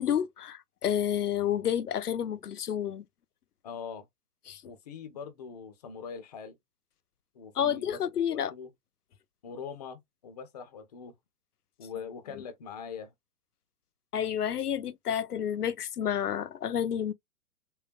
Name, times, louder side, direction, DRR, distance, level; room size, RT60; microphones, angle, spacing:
voice 1, 0.0-3.0 4.5-4.6 7.6-8.5 12.3-12.4 14.1-17.1, left 9 dB, 80° left, 0.6 m, -30 dB
voice 2, 3.6-4.1 4.6-6.6 7.3-8.0 8.3-8.7 9.4-11.1 11.8-13.1, left 6 dB, 30° left, 0.5 m, -42 dB
3.7 x 2.2 x 2.6 m
figure-of-eight pair, 120°, 45 cm